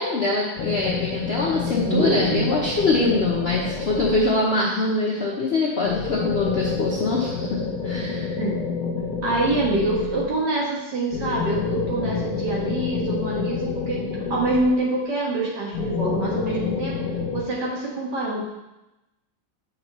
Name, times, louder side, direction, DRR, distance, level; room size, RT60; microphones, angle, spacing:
voice 1, 0.0-8.3, left 2 dB, 45° left, -4 dB, 0.8 m, -23 dB
sound 1, 0.6-4.7 5.8-10.5 11.1-15.1 15.7-17.4, left 5 dB, 65° left, 1.2 m, -29 dB
voice 2, 1.8-2.5 8.4-8.5 9.2-14.0 14.3-17.0 17.3-18.4, right 2 dB, 65° right, -3 dB, 2.2 m, -25 dB
8.0 x 5.6 x 3.0 m, 0.96 s
omnidirectional pair, 2.0 m